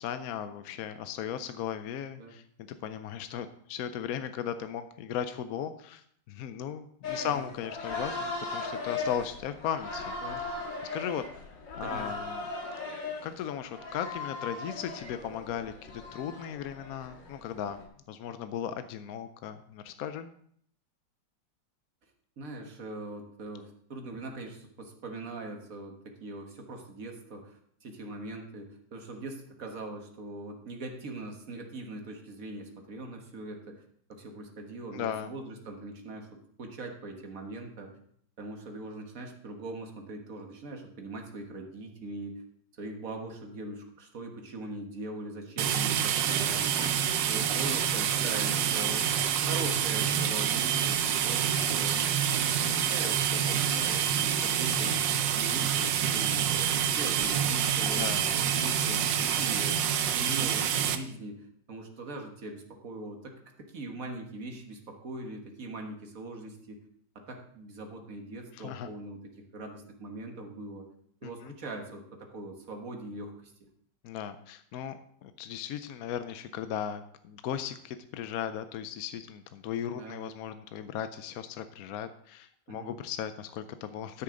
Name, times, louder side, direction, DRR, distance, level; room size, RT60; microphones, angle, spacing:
voice 1, 0.0-2.4 2.8-10.1 10.9-11.2 11.8-12.5 13.2-17.8 18.1-20.3 34.9-35.3 46.8-47.1 57.9-58.3 68.5-68.9 71.2-71.5 74.0-84.2, left 9 dB, 70° left, 10 dB, 0.9 m, -37 dB
sound 1, 7.0-17.8, left 3 dB, 85° left, 2.2 m, -38 dB
voice 2, 11.8-12.1 22.4-33.7 34.1-37.9 38.4-42.4 42.8-46.8 47.3-49.0 49.5-52.0 52.5-55.1 55.4-58.0 58.5-59.9 60.1-66.8 67.3-70.9 71.2-73.5 79.9-80.3 82.7-82.9, right 2 dB, 50° right, 3 dB, 1.8 m, -41 dB
sound 2, 45.6-61.0, right 9 dB, 90° right, 1.4 m, -27 dB
12.5 x 6.7 x 3.8 m, 0.64 s
omnidirectional pair, 1.9 m